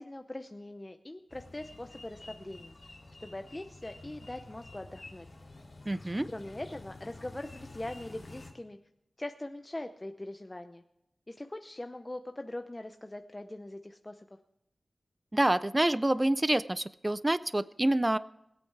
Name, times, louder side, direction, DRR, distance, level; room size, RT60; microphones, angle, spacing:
voice 1, 0.0-2.7 3.2-5.3 6.1-8.8 9.2-10.8 11.3-14.3, left 1 dB, 25° left, 7 dB, 0.7 m, -42 dB
sound 1, 1.3-8.5, left 2 dB, 45° left, 2.9 m, -50 dB
voice 2, 5.9-6.3 15.3-18.2, right 1 dB, 20° right, 16 dB, 0.4 m, -27 dB
20.0 x 8.6 x 4.7 m, 0.81 s
wide cardioid pair, 85°, 0 cm